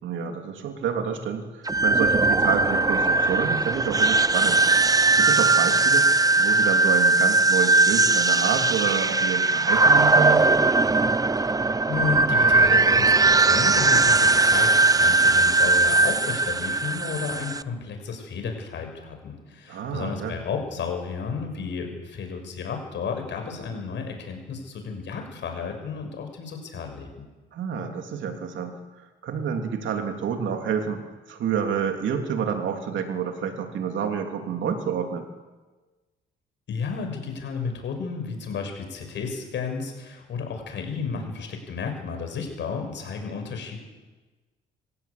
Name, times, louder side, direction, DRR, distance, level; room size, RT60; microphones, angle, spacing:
voice 1, 0.0-4.6 5.1-6.1 6.4-10.6 19.7-20.4 27.5-31.0 31.3-35.3, right 7 dB, 75° right, 4 dB, 3.2 m, -28 dB
sound 1, 1.6-17.6, right 3 dB, 20° right, 0.7 m, -19 dB
voice 2, 11.9-27.2 36.7-43.8, left 5 dB, 65° left, 4 dB, 6.7 m, -32 dB
27.0 x 16.5 x 8.6 m, 1.3 s
cardioid pair, 90°, 20 cm